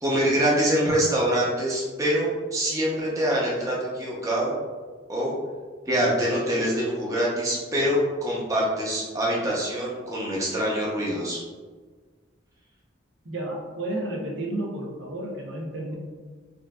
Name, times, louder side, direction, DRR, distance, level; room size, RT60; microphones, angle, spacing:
voice 1, 0.0-4.5 5.1-5.3 5.9-11.4, equal, 15° right, -6 dB, 0.7 m, -25 dB
voice 2, 13.2-15.9, right 1 dB, 65° right, -1 dB, 0.7 m, -32 dB
5.0 x 2.5 x 2.3 m, 1.4 s
head